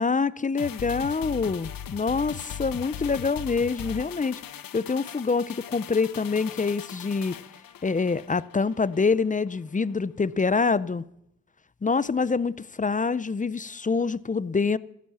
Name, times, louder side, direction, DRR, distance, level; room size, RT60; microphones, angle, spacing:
voice 1, 0.0-7.4 7.8-11.0 11.8-14.8, left 4 dB, 25° left, 0.5 m, -26 dB
sound 1, 0.6-9.2 9.5-9.6, left 9 dB, 75° left, 0.9 m, -39 dB
14.5 x 11.5 x 7.1 m
cardioid pair, 65°, 35 cm